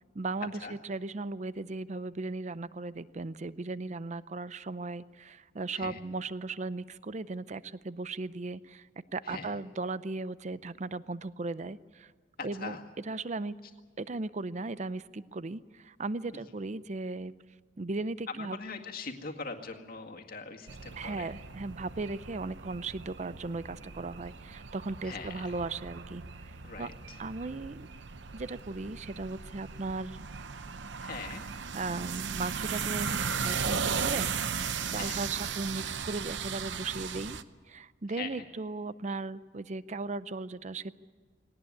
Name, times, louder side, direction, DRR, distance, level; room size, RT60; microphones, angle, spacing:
voice 1, 0.1-8.9 9.1-12.1 12.4-13.5 14.0-17.3 17.8-18.6 21.0-26.5 26.8-26.9 27.2-27.9 28.3-30.2 31.7-34.3 34.9-37.4 37.7-40.9, right 3 dB, 40° right, 16 dB, 0.6 m, -37 dB
voice 2, 9.2-9.6 12.4-12.9 16.3-16.4 18.3-21.3 25.0-25.5 26.6-27.2 31.0-31.5 34.9-35.2 38.1-38.5, left 4 dB, 50° left, 2 dB, 2.0 m, -42 dB
sound 1, 20.7-37.4, right 6 dB, 65° right, 0.8 m, -37 dB
19.5 x 18.5 x 9.7 m, 1.5 s
head